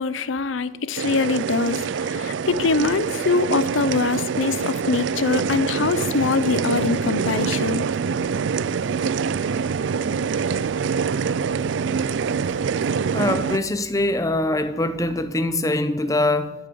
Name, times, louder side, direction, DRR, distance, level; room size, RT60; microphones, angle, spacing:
voice 1, 0.0-7.8, left 4 dB, 90° left, 0.6 m, -23 dB
sound 1, 1.0-13.6, right 6 dB, 75° right, 0.4 m, -25 dB
voice 2, 13.1-16.5, left 1 dB, 15° left, 0.8 m, -23 dB
12.0 x 8.8 x 6.9 m
head